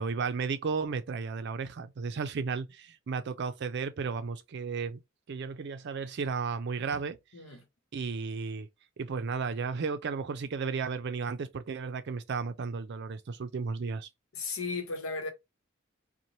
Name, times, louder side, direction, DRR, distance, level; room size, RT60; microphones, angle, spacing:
voice 1, 0.0-5.0 5.3-7.2 7.9-8.7 9.0-14.1, right 5 dB, 55° right, 0.4 m, -34 dB
voice 2, 7.3-7.7 14.3-15.3, left 4 dB, 85° left, 0.9 m, -35 dB
2.6 x 2.1 x 3.0 m
head